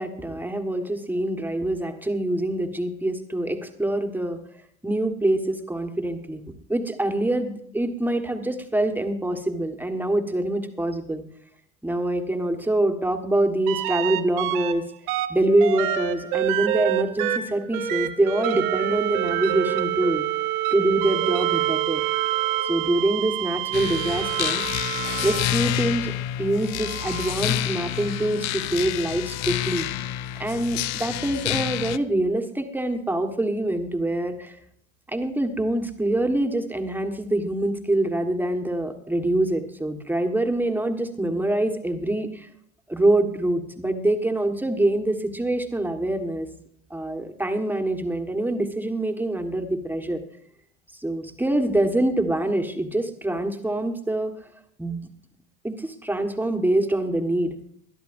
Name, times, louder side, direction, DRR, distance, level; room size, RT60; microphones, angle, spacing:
voice 1, 0.0-4.4 4.8-6.4 6.7-11.2 11.8-14.8 15.3-20.2 20.7-22.0 22.6-24.6 25.2-26.1 26.4-29.9 30.4-34.6 35.1-42.5 42.9-46.5 46.9-50.2 51.0-54.3 54.8-55.0 55.6-57.5, right 1 dB, 5° right, 5 dB, 1.4 m, -25 dB
sound 1, 13.7-14.7 15.1-25.8 26.7-28.3 30.0-30.1, right 13 dB, 50° right, 1.1 m, -27 dB
sound 2, 23.7-32.0, left 13 dB, 40° left, 0.6 m, -28 dB
21.0 x 12.5 x 2.6 m, 0.68 s
figure-of-eight pair, 80°, 43 cm